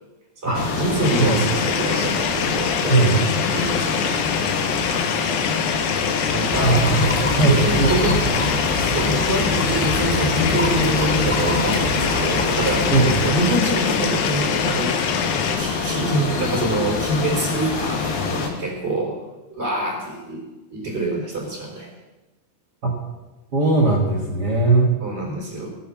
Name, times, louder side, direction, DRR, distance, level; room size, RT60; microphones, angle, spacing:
voice 1, 0.4-3.1 3.5-4.1 6.2-6.9 7.2-8.2 8.8-14.9 15.2-19.2 19.5-20.4 20.7-21.9 25.0-25.7, right 2 dB, 15° right, -1 dB, 4.3 m, -26 dB
sound 1, 0.5-18.5, left 5 dB, 65° left, 3.1 m, -26 dB
sound 2, 1.0-15.6, left 7 dB, 80° left, 3.3 m, -25 dB
voice 2, 2.9-3.3 4.9-5.0 6.6-7.0 7.4-8.2 12.9-13.3 22.8-22.9 23.5-24.9, right 3 dB, 75° right, 0 dB, 0.9 m, -19 dB
sound 3, 6.5-13.3, left 1 dB, 5° left, 0.8 m, -26 dB
17.5 x 8.2 x 7.2 m, 1.1 s
omnidirectional pair, 4.8 m